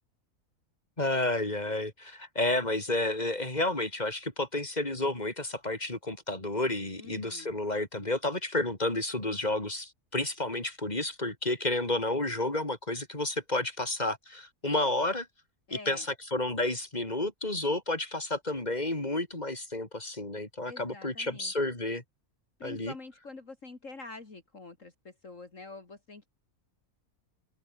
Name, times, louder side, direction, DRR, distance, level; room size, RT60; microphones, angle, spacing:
voice 1, 1.0-15.3 15.7-22.0 22.6-22.9, left 2 dB, 25° left, 5.0 m, -31 dB
voice 2, 7.0-7.6 15.7-16.0 20.6-21.5 22.6-26.3, left 3 dB, 55° left, 3.4 m, -46 dB
omnidirectional pair, 1.6 m